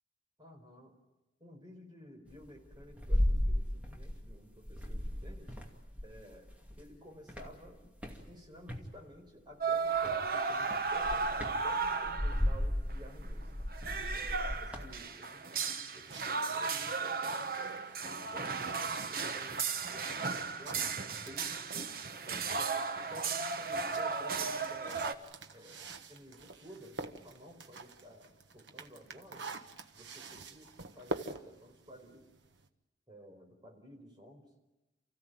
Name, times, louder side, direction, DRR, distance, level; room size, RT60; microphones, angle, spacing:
voice 1, 0.4-0.9 1.4-5.6 6.0-6.5 6.8-7.9 8.2-11.3 11.6-13.5 14.1-19.7 19.9-21.9 22.3-25.0 25.5-29.5 29.9-30.7 31.0-32.2 33.1-34.5, equal, 25° right, 2 dB, 4.6 m, -53 dB
sound 1, 2.3-4.4 4.6-6.9 7.3-8.9 10.0-10.3 10.7-14.9, left 1 dB, 10° right, 2.4 m, -35 dB
sound 2, 9.6-12.6 12.9-13.0 13.2-25.1, right 4 dB, 50° right, 1.1 m, -35 dB
sound 3, 15.8-22.5 23.0-32.7, right 3 dB, 80° right, 1.4 m, -47 dB
29.5 x 15.5 x 9.3 m, 1.1 s
head